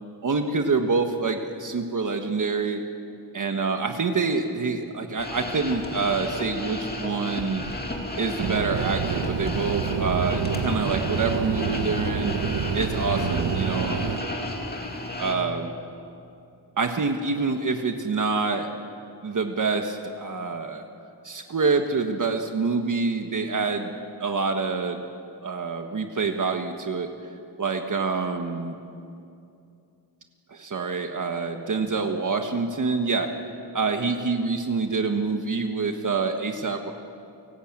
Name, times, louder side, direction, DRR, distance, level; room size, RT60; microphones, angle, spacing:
voice 1, 0.2-2.8 3.3-7.7 8.2-12.3 12.7-14.3 15.2-15.7 16.8-18.7 19.2-20.8 21.2-23.9 24.2-25.0 25.4-27.1 27.6-28.8 30.5-33.3 33.7-36.9, right 4 dB, 45° right, 5 dB, 1.4 m, -26 dB
sound 1, 5.2-15.4, left 1 dB, 20° left, 2.4 m, -33 dB
sound 2, 8.4-14.2, right 6 dB, 85° right, 1.3 m, -28 dB
29.0 x 18.0 x 8.8 m, 2.6 s
wide cardioid pair, 170°, 42 cm